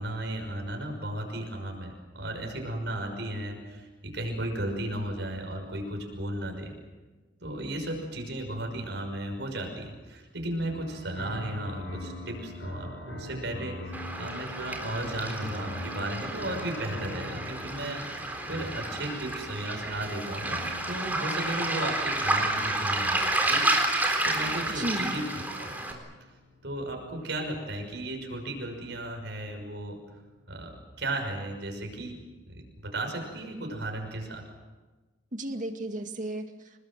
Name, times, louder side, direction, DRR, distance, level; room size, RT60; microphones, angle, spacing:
voice 1, 0.0-6.7 7.4-18.2 18.4-26.0 26.6-30.0 30.5-32.2 32.5-34.4, right 1 dB, 75° right, 3 dB, 5.9 m, -35 dB
sound 1, 10.6-27.7 28.5-30.4, left 1 dB, 75° left, 7.4 m, -44 dB
Waves surf, 13.9-25.9, right 2 dB, 10° right, 4.0 m, -30 dB
voice 2, 24.7-25.2 35.3-36.9, right 1 dB, 45° right, 5 dB, 2.2 m, -34 dB
29.0 x 20.0 x 7.6 m, 1.3 s
head